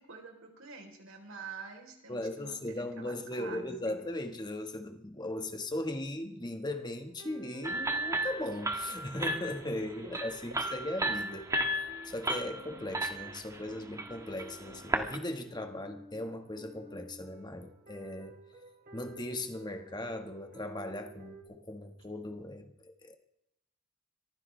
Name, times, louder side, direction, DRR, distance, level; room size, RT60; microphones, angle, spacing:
voice 1, 0.0-4.0, right 5 dB, 85° right, 2 dB, 3.9 m, -47 dB
voice 2, 2.1-11.5 12.0-18.4 18.9-23.2, left 1 dB, 20° left, 5 dB, 1.6 m, -38 dB
sound 1, 7.0-21.4, right 2 dB, 50° right, 3.0 m, -52 dB
sound 2, 7.6-15.2, right 1 dB, 15° right, 1.5 m, -34 dB
23.5 x 15.0 x 3.4 m, 0.79 s
head